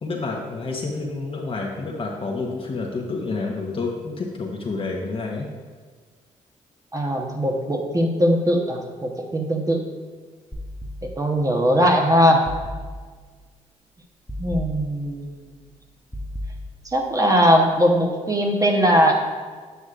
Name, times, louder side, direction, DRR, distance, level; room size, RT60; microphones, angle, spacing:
voice 1, 0.0-5.5, left 3 dB, 45° left, -1 dB, 0.9 m, -29 dB
voice 2, 6.9-9.8 11.0-12.4 14.4-15.4 16.9-19.1, equal, 25° right, 1 dB, 1.0 m, -20 dB
sound 1, 10.5-11.5 12.5-13.4 14.3-15.4 16.1-17.2, left 1 dB, 10° left, 0.7 m, -35 dB
8.0 x 6.3 x 2.5 m, 1.5 s
supercardioid pair, 60°, 14 cm